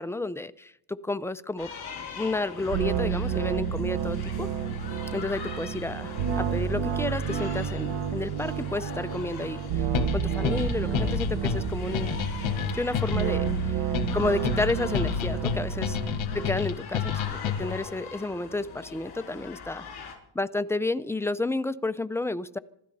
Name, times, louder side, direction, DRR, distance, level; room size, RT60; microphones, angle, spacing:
voice 1, 0.0-1.7 2.1-4.5 5.1-9.9 10.1-12.1 12.7-19.9 20.3-22.6, left 2 dB, 5° left, 12 dB, 0.5 m, -31 dB
sound 1, 1.6-20.2, left 6 dB, 55° left, 4.7 m, -41 dB
sound 2, 2.7-16.5, right 8 dB, 80° right, 1.3 m, -30 dB
sound 3, 9.9-17.9, left 8 dB, 75° left, 1.4 m, -30 dB
26.0 x 13.0 x 4.2 m, 0.75 s
cardioid pair, 115°, 47 cm